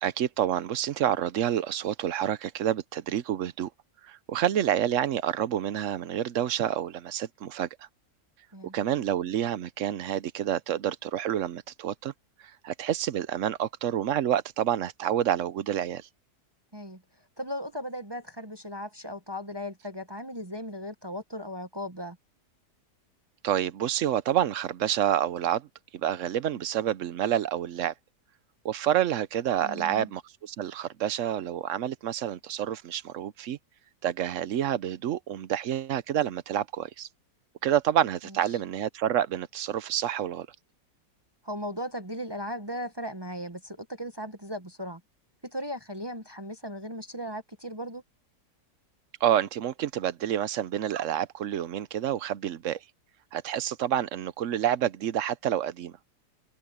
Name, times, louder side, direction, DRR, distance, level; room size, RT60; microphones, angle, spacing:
voice 1, 0.0-3.7 4.0-7.9 8.7-12.1 12.4-16.1 23.4-25.7 25.9-27.9 28.6-33.6 34.0-37.1 37.6-40.5 49.2-52.8 53.3-56.0, right 10 dB, 60° right, 0.9 m, -28 dB
voice 2, 17.4-22.2 29.6-30.1 41.4-45.0 45.4-48.0, equal, 20° right, 0.8 m, -37 dB
open air
omnidirectional pair, 1.7 m